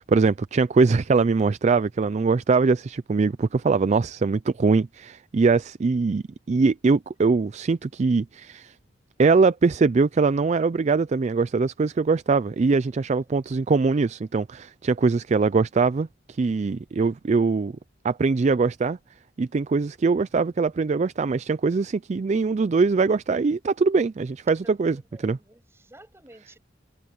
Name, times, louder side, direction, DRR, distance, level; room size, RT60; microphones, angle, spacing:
voice 1, 0.0-8.7 9.2-17.8 18.0-19.0 19.4-25.0 25.2-25.4, right 4 dB, 35° right, 0.4 m, -22 dB
voice 2, 12.9-13.2 24.6-26.6, right 1 dB, 15° right, 8.0 m, -52 dB
head